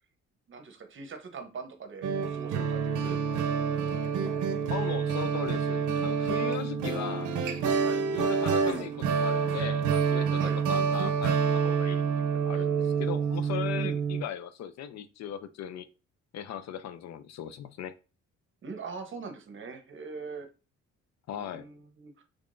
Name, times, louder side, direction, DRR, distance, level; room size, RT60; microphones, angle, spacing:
voice 1, 0.5-3.2 7.8-8.0 10.4-10.6 12.6-12.7 13.8-13.9 18.6-20.5 21.3-22.2, right 5 dB, 40° right, 0.8 m, -42 dB
sound 1, 2.0-14.2, right 6 dB, 85° right, 0.6 m, -28 dB
voice 2, 4.7-7.3 8.1-11.4 11.6-12.0 12.4-15.9 16.3-17.9 21.3-21.6, left 9 dB, 60° left, 0.5 m, -38 dB
3.6 x 3.4 x 2.5 m
cardioid pair, 90°, 30 cm